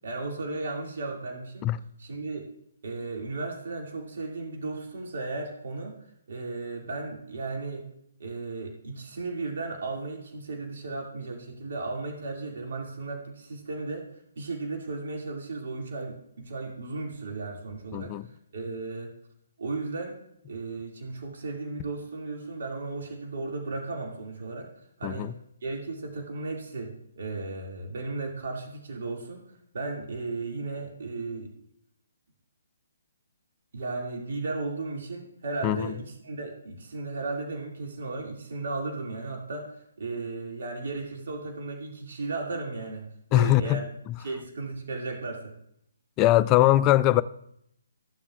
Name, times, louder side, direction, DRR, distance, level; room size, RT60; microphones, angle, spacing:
voice 1, 0.0-1.7 2.0-2.4 2.8-6.0 6.3-7.8 8.2-14.1 14.4-18.1 18.5-19.1 19.6-20.2 20.5-24.7 25.0-25.3 25.6-29.4 29.7-31.5 33.7-43.8 44.2-45.5, right 3 dB, 60° right, 2.3 m, -35 dB
voice 2, 17.9-18.3 25.0-25.3 35.6-35.9 43.3-43.8 46.2-47.2, left 15 dB, 25° left, 0.3 m, -21 dB
14.5 x 7.2 x 2.4 m
figure-of-eight pair, 140°, 0 cm